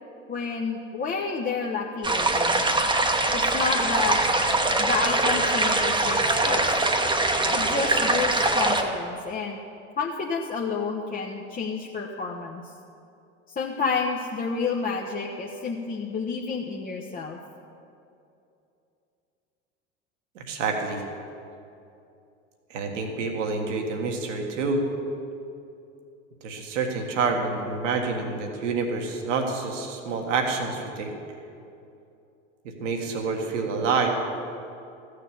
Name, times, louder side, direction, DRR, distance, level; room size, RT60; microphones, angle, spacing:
voice 1, 0.3-2.6 3.3-4.2 4.8-6.8 7.5-9.6 10.0-12.6 13.6-17.4, left 5 dB, 25° left, -1 dB, 0.9 m, -30 dB
sound 1, 2.0-8.8, right 2 dB, 10° right, 1.1 m, -23 dB
voice 2, 20.4-21.0 22.7-24.8 26.4-31.1 32.8-34.1, right 4 dB, 70° right, 3 dB, 1.7 m, -27 dB
14.5 x 6.7 x 7.0 m, 2.7 s
hypercardioid pair, 80°, 38 cm